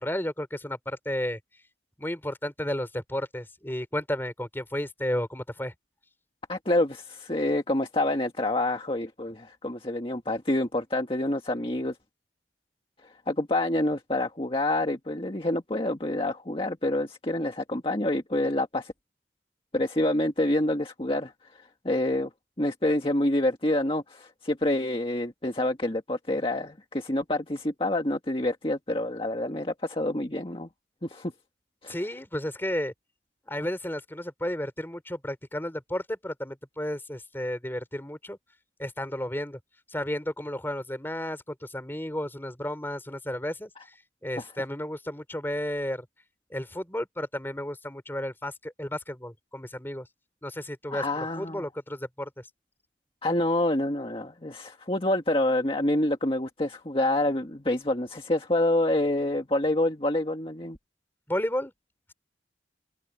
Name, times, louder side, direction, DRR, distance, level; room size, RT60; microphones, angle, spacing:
voice 1, 0.0-1.4 2.0-5.7 31.9-32.9 33.5-38.4 38.8-39.6 39.9-43.9 44.2-46.1 46.5-50.1 50.4-52.5 61.3-61.7, left 1 dB, 15° left, 3.4 m, -33 dB
voice 2, 6.5-11.9 13.3-18.9 19.7-22.3 22.6-30.7 31.0-31.3 31.8-32.0 50.9-51.6 53.2-60.8, left 1 dB, 30° left, 1.7 m, -27 dB
head